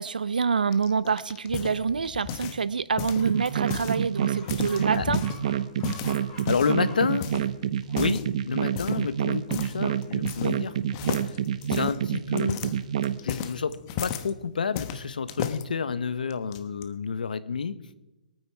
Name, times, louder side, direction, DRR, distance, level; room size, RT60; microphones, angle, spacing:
voice 1, 0.0-5.2, right 5 dB, 90° right, 17 dB, 0.7 m, -26 dB
sound 1, 0.7-2.7 3.0-4.0 4.3-5.4 5.8-6.8 7.2-7.5 7.9-8.3 8.8-9.1 9.5-9.8 10.0-10.7 10.9-14.3 14.8-15.6 16.3-16.8, left 9 dB, 35° left, 1.2 m, -34 dB
Chicken rooster, 3.2-14.3, equal, 15° left, 5.7 m, -51 dB
sound 2, 3.2-13.2, right 10 dB, 55° right, 0.9 m, -28 dB
voice 2, 6.5-7.3 7.9-10.8 11.2-11.3 11.7-12.6 13.2-17.8, left 5 dB, 80° left, 13 dB, 1.2 m, -29 dB
22.5 x 9.3 x 4.7 m, 1.0 s
hypercardioid pair, 145°, 4 cm